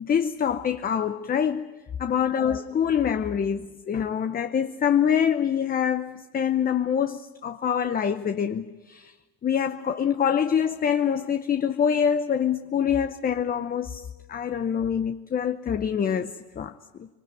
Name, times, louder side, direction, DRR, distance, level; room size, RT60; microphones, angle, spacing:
voice 1, 0.0-1.7 2.0-9.1 9.4-17.1, left 8 dB, 25° left, 0.7 m, -25 dB
25.0 x 22.5 x 9.1 m
cardioid pair, 130°, 35 cm